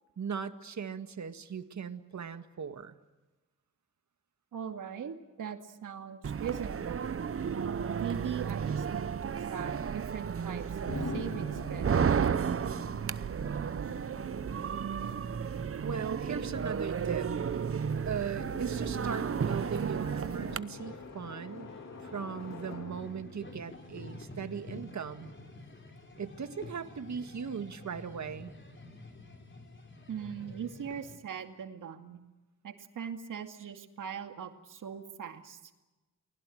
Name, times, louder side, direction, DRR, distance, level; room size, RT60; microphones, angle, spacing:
voice 1, 0.2-3.0 15.8-17.3 18.1-21.7 22.0-25.3 26.2-28.5, right 6 dB, 65° right, 9 dB, 1.9 m, -38 dB
voice 2, 4.5-7.1 8.0-12.1 30.1-32.2 32.6-35.7, right 8 dB, 90° right, 6 dB, 2.3 m, -40 dB
sound 1, 6.2-20.6, right 7 dB, 45° right, 0.8 m, -33 dB
sound 2, 10.8-24.6, left 2 dB, 55° left, 3.0 m, -46 dB
sound 3, 15.0-31.2, left 2 dB, 40° left, 3.9 m, -50 dB
29.5 x 20.5 x 7.8 m, 1.1 s
cardioid pair, 70°, 31 cm